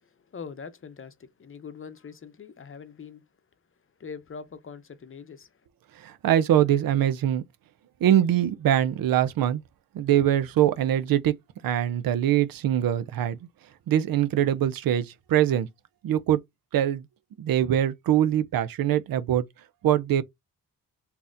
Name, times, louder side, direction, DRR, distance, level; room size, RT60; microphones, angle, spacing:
voice 1, 0.0-3.2 4.0-5.6, left 6 dB, 35° left, 0.7 m, -43 dB
voice 2, 6.0-7.4 8.0-9.6 9.9-11.3 11.6-13.4 13.9-15.7 16.0-16.4 16.7-17.0 17.4-19.4 19.8-20.2, right 11 dB, 75° right, 0.6 m, -23 dB
3.9 x 2.8 x 2.5 m
cardioid pair, 85°, 35 cm